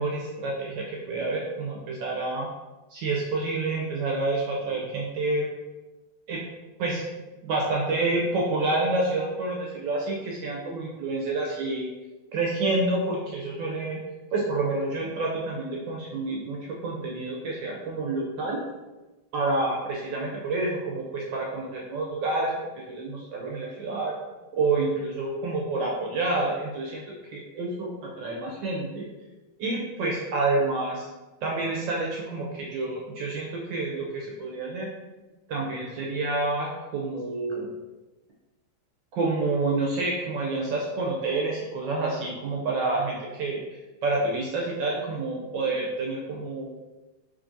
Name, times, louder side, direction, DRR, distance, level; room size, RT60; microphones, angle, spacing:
voice 1, 0.0-2.5 2.9-5.5 6.3-6.4 6.8-7.0 7.4-11.9 12.3-14.0 14.3-18.6 19.3-22.5 22.9-24.1 24.5-27.0 27.3-29.1 29.6-31.1 31.4-34.9 35.5-37.7 39.2-46.7, right 2 dB, 75° right, -2 dB, 1.1 m, -28 dB
3.7 x 3.0 x 2.5 m, 1.1 s
omnidirectional pair, 2.4 m